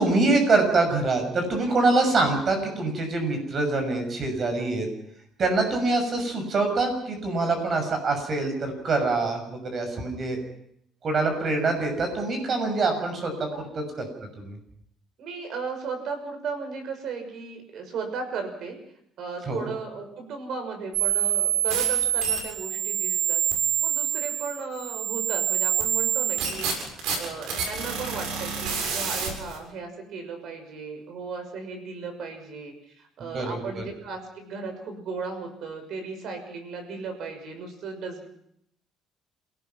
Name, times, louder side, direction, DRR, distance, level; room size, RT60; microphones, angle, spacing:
voice 1, 0.0-4.9 5.4-10.4 11.0-13.5 13.7-14.0 14.4-14.6 19.5-19.7 33.2-33.8, right 3 dB, 35° right, 5 dB, 6.8 m, -25 dB
voice 2, 15.2-18.8 19.2-23.4 23.8-38.3, right 5 dB, 55° right, 6 dB, 6.3 m, -36 dB
sound 1, 20.9-29.6, right 10 dB, 85° right, 7.4 m, -26 dB
27.5 x 18.5 x 6.0 m, 0.72 s
cardioid pair, 155°, 0 cm